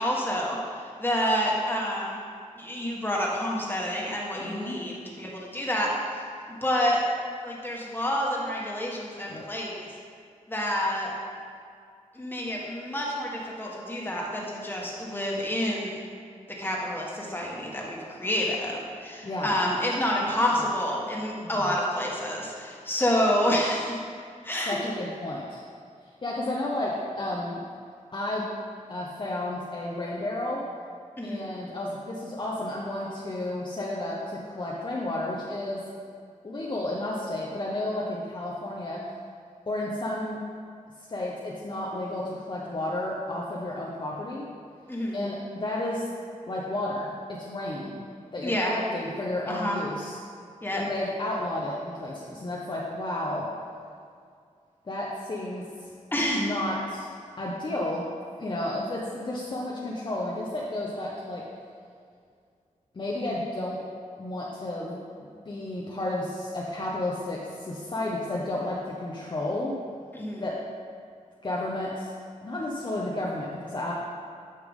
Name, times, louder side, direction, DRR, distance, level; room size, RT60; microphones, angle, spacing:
voice 1, 0.0-2.2 2.6-5.9 6.6-7.1 7.4-9.9 10.5-11.1 12.1-16.0 16.6-24.0 24.4-24.8 31.2-31.5 44.9-45.2 48.4-48.8 49.5-49.8 50.6-50.8 56.1-56.5 70.1-70.4, equal, 15° left, -3 dB, 1.6 m, -28 dB
voice 2, 4.4-4.8 9.3-9.4 19.2-19.6 20.5-20.6 21.4-21.7 24.7-25.6 26.2-27.6 28.1-28.4 28.9-30.6 31.2-35.8 36.4-39.0 39.7-40.4 41.0-44.5 45.1-46.1 46.5-47.1 47.4-48.0 48.3-50.2 50.7-53.5 54.9-55.9 56.3-57.1 57.4-58.0 58.4-61.4 62.9-63.8 64.2-65.0 65.5-69.8 70.4-70.6 71.4-72.1 72.4-73.9, left 1 dB, 40° left, -4 dB, 1.0 m, -32 dB
9.6 x 5.7 x 3.7 m, 2.3 s
cardioid pair, 80°, 13 cm